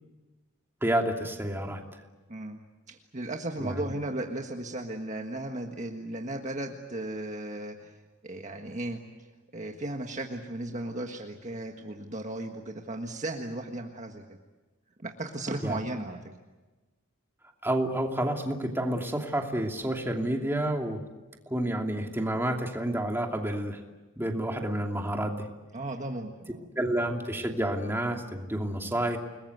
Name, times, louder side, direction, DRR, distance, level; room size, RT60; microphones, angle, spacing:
voice 1, 0.8-1.8 3.6-3.9 15.6-15.8 17.6-21.0 21.5-23.8 24.2-25.5 26.8-29.2, right 1 dB, 10° right, 2 dB, 2.8 m, -29 dB
voice 2, 2.9-7.9 8.2-9.0 9.5-14.2 15.0-16.2 25.7-26.7, right 1 dB, 35° right, 3 dB, 1.6 m, -35 dB
30.0 x 20.5 x 8.1 m, 1.2 s
head